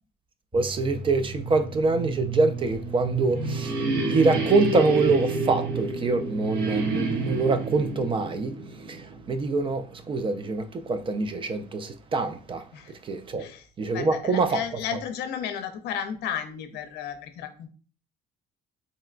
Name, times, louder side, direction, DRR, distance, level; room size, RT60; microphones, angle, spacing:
sound 1, 0.5-8.2, right 7 dB, 15° right, 0.9 m, -34 dB
voice 1, 0.5-13.5 13.8-14.6, right 3 dB, 30° right, 0.3 m, -25 dB
sound 2, 2.8-9.5, right 1 dB, 70° right, 0.8 m, -30 dB
voice 2, 13.4-17.7, left 8 dB, 80° left, 0.5 m, -34 dB
3.8 x 2.1 x 2.4 m
cardioid pair, 110°, 17 cm